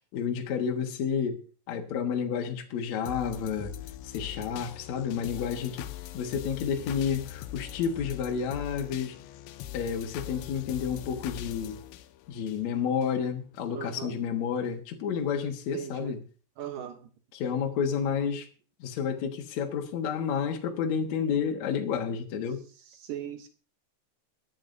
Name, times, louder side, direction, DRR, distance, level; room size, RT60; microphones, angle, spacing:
voice 1, 0.1-1.4 1.7-3.7 4.0-9.2 9.7-11.8 12.3-16.2 17.3-18.5 18.8-22.6, left 7 dB, 65° left, 1.8 m, -30 dB
sound 1, 3.1-13.1 13.6-13.7, left 13 dB, 85° left, 3.0 m, -42 dB
voice 2, 13.7-14.2 15.7-16.1 16.6-17.1 23.0-23.5, right 10 dB, 75° right, 2.0 m, -38 dB
22.5 x 10.5 x 2.7 m
omnidirectional pair, 5.3 m